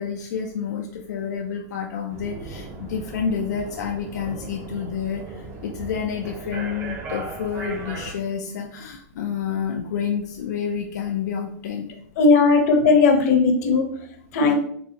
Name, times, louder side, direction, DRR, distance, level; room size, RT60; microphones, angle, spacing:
voice 1, 0.0-11.9 14.4-14.5, left 7 dB, 85° left, 1 dB, 0.5 m, -29 dB
sound 1, 2.1-8.1, right 3 dB, 25° right, 0.6 m, -37 dB
voice 2, 12.2-13.9 14.3-14.5, left 4 dB, 60° left, 4 dB, 0.8 m, -17 dB
4.1 x 2.3 x 2.8 m, 0.63 s
supercardioid pair, 145°, 9 cm